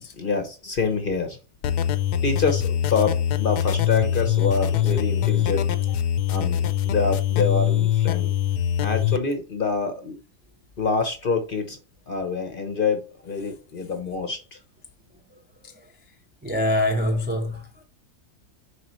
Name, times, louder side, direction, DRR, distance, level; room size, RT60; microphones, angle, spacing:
voice 1, 0.1-1.4 2.2-5.7 6.3-8.3 8.8-10.2 10.8-11.8 12.1-14.6, left 4 dB, 45° left, 0.8 m, -26 dB
sound 1, 1.6-9.2, left 10 dB, 80° left, 1.2 m, -23 dB
voice 2, 15.3-15.8 16.4-17.8, left 1 dB, 15° right, 0.4 m, -26 dB
6.4 x 4.9 x 3.1 m
omnidirectional pair, 1.7 m